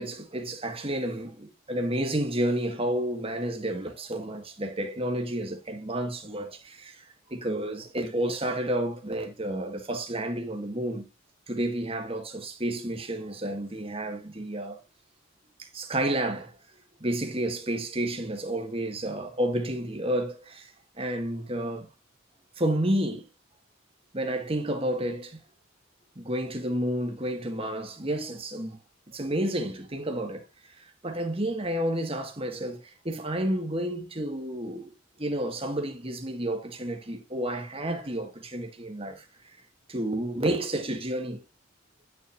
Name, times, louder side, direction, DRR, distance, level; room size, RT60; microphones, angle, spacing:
voice 1, 0.0-7.0 7.3-11.1 11.5-14.8 15.6-16.5 17.0-20.7 21.0-21.9 22.6-23.3 24.1-25.4 26.2-28.8 29.1-34.9 35.2-39.6 39.9-41.4, right 1 dB, 30° right, 1.8 m, -30 dB
11.0 x 7.1 x 2.6 m
head